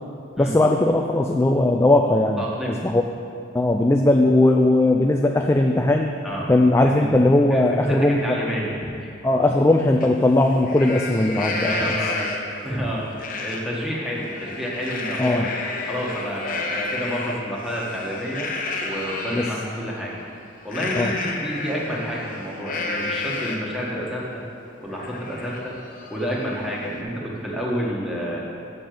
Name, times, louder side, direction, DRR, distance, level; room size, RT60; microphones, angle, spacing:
voice 1, 0.4-3.0 3.5-6.1 6.5-8.2 9.2-11.9 15.2-15.5 19.3-19.4 21.0-21.1, left 2 dB, 15° left, 3 dB, 0.4 m, -18 dB
voice 2, 2.4-2.8 6.2-6.5 6.8-7.1 7.5-9.1 11.6-12.3 12.6-18.5 18.8-20.1 20.6-24.4 24.8-25.8 26.1-28.4, equal, ahead, -5 dB, 1.6 m, -29 dB
Livestock farm animals working animals, 10.0-10.1 10.5-12.6 13.2-13.6 14.0-19.6 20.7-23.8 24.2-24.3 24.6-27.0, left 3 dB, 45° left, 0.9 m, -31 dB
7.7 x 6.8 x 7.7 m, 2.4 s
head